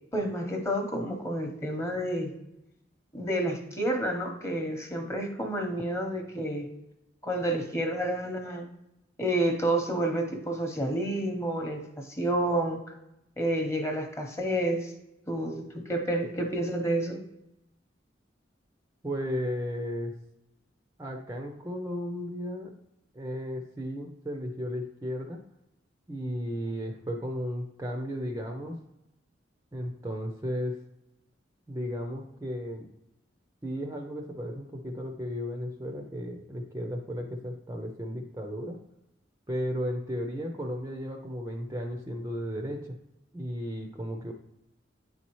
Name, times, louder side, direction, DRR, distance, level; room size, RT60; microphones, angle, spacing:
voice 1, 0.1-2.3 3.1-6.7 7.2-8.7 9.2-12.8 13.4-14.9 15.3-17.2, right 1 dB, 15° left, 3 dB, 0.9 m, -29 dB
voice 2, 19.0-20.2 21.0-22.7 23.1-25.4 26.1-28.8 29.7-30.8 31.7-32.9 33.6-38.8 39.5-43.0 43.3-44.3, equal, 15° right, 2 dB, 0.5 m, -34 dB
9.2 x 4.2 x 3.0 m, 0.87 s
head